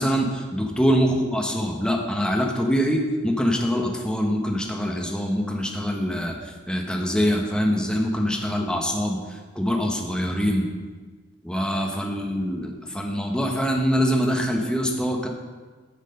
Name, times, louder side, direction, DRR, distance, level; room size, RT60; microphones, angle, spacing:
voice 1, 0.0-10.7 11.4-15.3, equal, 5° left, 1 dB, 1.0 m, -24 dB
10.0 x 6.5 x 5.3 m, 1.4 s
head